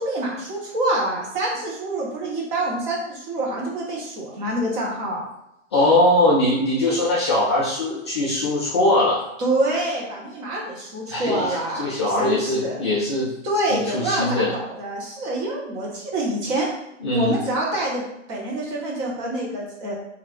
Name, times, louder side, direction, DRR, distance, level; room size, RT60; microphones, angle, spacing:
voice 1, 0.0-5.2 9.4-12.8 13.4-16.7 17.1-19.9, right 1 dB, 15° right, -4 dB, 0.6 m, -26 dB
voice 2, 5.7-9.2 11.1-13.3 13.7-14.5 17.0-17.4, left 1 dB, 20° left, -7 dB, 0.4 m, -21 dB
2.9 x 2.4 x 3.6 m, 0.86 s
figure-of-eight pair, 120°, 39 cm